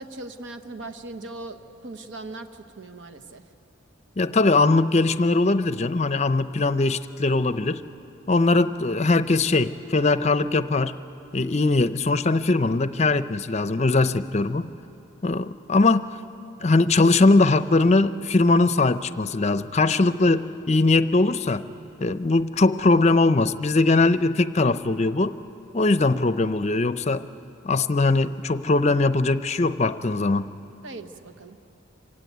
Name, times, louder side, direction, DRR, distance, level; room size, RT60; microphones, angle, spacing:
voice 1, 0.0-3.4 30.8-31.6, right 2 dB, 65° right, 8 dB, 1.1 m, -39 dB
voice 2, 4.2-7.8 8.3-10.9 11.3-14.7 15.2-16.1 16.6-21.6 22.0-25.4 25.7-27.2 27.6-30.5, left 3 dB, 35° left, 13 dB, 0.6 m, -21 dB
26.5 x 16.5 x 9.3 m, 2.8 s
head